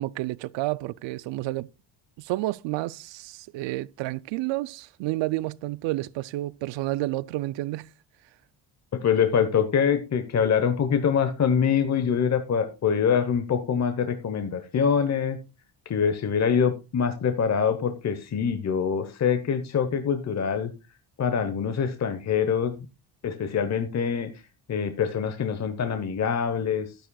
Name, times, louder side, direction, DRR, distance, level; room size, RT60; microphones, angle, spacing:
voice 1, 0.0-1.7 2.2-7.9, right 18 dB, 85° right, 0.5 m, -30 dB
voice 2, 8.9-15.4 15.9-20.7 21.2-22.9 23.2-24.4 24.7-26.9, left 7 dB, 40° left, 1.0 m, -24 dB
11.5 x 10.5 x 2.3 m
cardioid pair, 100°, 43 cm